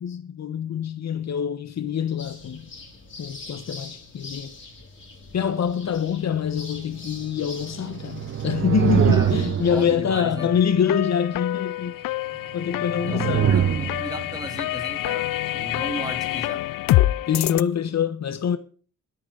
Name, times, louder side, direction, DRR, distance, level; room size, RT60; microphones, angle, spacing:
voice 1, 0.0-2.7 3.2-4.5 5.3-12.0 12.5-13.6 17.3-18.6, left 8 dB, 50° left, 1.2 m, -25 dB
sound 1, 2.2-10.0, left 3 dB, 35° left, 5.2 m, -43 dB
sound 2, 7.6-10.6 12.6-14.5, right 9 dB, 40° right, 0.7 m, -24 dB
voice 2, 9.7-10.6 13.0-16.7, right 1 dB, 10° right, 3.0 m, -35 dB
sound 3, 10.4-17.6, left 16 dB, 75° left, 0.6 m, -26 dB
20.5 x 9.2 x 4.0 m
cardioid pair, 95°, 34 cm